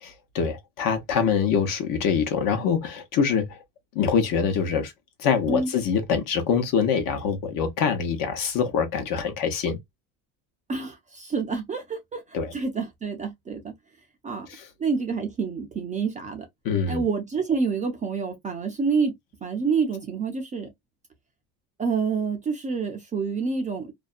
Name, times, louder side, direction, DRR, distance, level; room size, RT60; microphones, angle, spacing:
voice 1, 0.0-3.6 3.9-4.9 5.2-9.8 12.3-12.5 14.5-14.6 16.6-17.0, left 6 dB, 55° left, 0.9 m, -24 dB
voice 2, 10.7-13.7 14.2-14.5 14.8-16.5 16.9-20.7 21.8-23.9, right 5 dB, 20° right, 0.4 m, -28 dB
2.5 x 2.1 x 2.4 m
cardioid pair, 140°, 39 cm